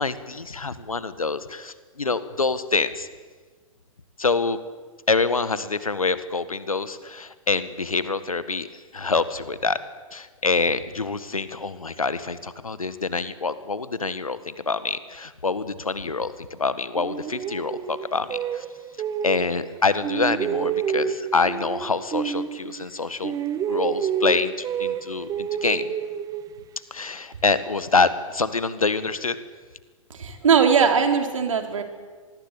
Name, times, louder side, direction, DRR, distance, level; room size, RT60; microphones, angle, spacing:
voice 1, 0.0-3.1 4.2-4.6 5.1-9.8 10.1-18.6 19.2-23.4 23.7-25.9 26.9-29.4, left 4 dB, 85° left, 14 dB, 1.7 m, -26 dB
sound 1, 17.0-19.7 20.0-23.0 23.2-26.8, right 8 dB, 20° right, 1.3 m, -29 dB
voice 2, 30.1-31.8, right 6 dB, 65° right, 5 dB, 4.0 m, -20 dB
26.0 x 20.0 x 8.5 m, 1.4 s
figure-of-eight pair, 115°, 18 cm